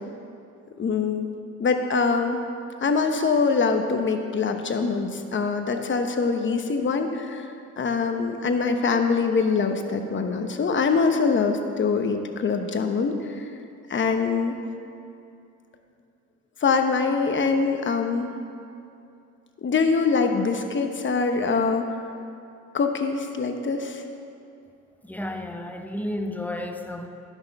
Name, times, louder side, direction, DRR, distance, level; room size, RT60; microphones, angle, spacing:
voice 1, 0.8-1.3 1.6-2.4 2.8-13.5 13.9-14.5 16.6-18.3 19.6-22.0 22.7-24.0, left 4 dB, 40° left, 5 dB, 1.0 m, -24 dB
voice 2, 25.0-27.1, left 1 dB, 5° left, 5 dB, 0.8 m, -32 dB
11.0 x 6.3 x 5.4 m, 2.6 s
cardioid pair, 90°, 30 cm